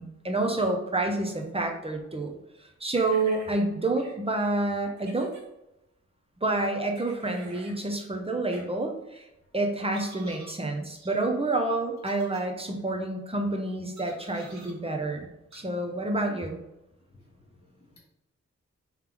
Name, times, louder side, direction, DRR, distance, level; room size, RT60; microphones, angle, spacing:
voice 1, 0.0-5.3 6.4-9.3 9.5-15.3 15.5-16.6, right 2 dB, 20° right, 2 dB, 0.7 m, -28 dB
sound 1, 2.9-3.6 4.0-4.1 5.0-5.4 7.0-7.8 8.5-8.6 9.9-10.6 11.0-11.1 12.0-12.4 14.0-14.7 15.5-15.6, right 1 dB, 70° right, 1.2 m, -48 dB
voice 2, 15.6-16.0 17.1-18.0, left 1 dB, 55° left, -4 dB, 1.4 m, -58 dB
3.4 x 3.2 x 3.4 m, 0.91 s
wide cardioid pair, 80°, 29 cm